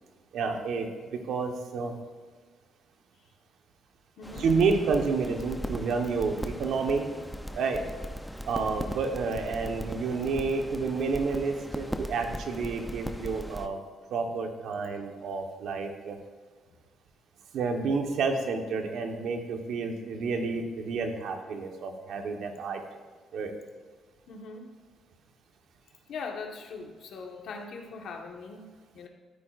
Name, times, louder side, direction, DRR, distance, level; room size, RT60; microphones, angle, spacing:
voice 1, 0.3-1.9 4.4-7.0 7.5-7.8 8.4-13.8 14.1-16.2 17.5-22.8 23.3-23.5, right 4 dB, 75° right, 4 dB, 1.2 m, -30 dB
sound 1, 4.2-13.7, equal, ahead, 0.6 m, -39 dB
voice 2, 24.3-24.7 26.1-28.7 28.9-29.1, left 4 dB, 70° left, 2 dB, 1.4 m, -40 dB
13.0 x 9.1 x 2.5 m, 1.5 s
cardioid pair, 90°, 0 cm